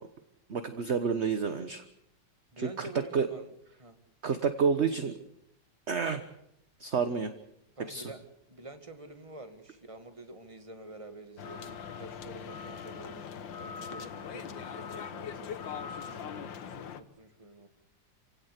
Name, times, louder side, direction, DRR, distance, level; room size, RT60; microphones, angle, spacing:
voice 1, 0.5-1.8 2.6-3.3 4.2-5.2 5.9-6.2 6.8-7.3 7.9-8.1, right 5 dB, 40° right, 10 dB, 1.3 m, -29 dB
voice 2, 2.5-3.5 3.8-4.0 7.8-17.7, right 2 dB, 15° right, 8 dB, 2.1 m, -48 dB
sound 1, 11.4-17.0, left 7 dB, 85° left, 1.9 m, -41 dB
28.0 x 17.0 x 8.3 m, 0.80 s
omnidirectional pair, 2.0 m